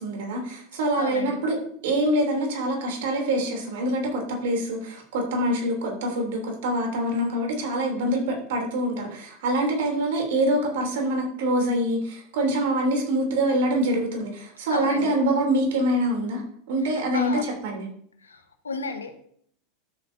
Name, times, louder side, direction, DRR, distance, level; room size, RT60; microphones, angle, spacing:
voice 1, 0.0-1.6 1.8-16.4 16.7-17.3 17.6-17.9, right 1 dB, 65° right, 1 dB, 3.1 m, -25 dB
voice 2, 1.0-1.4 14.7-15.2 16.8-17.4 18.2-19.1, left 4 dB, 85° left, 7 dB, 1.2 m, -33 dB
13.0 x 7.8 x 2.7 m, 0.62 s
hypercardioid pair, 85°, 0 cm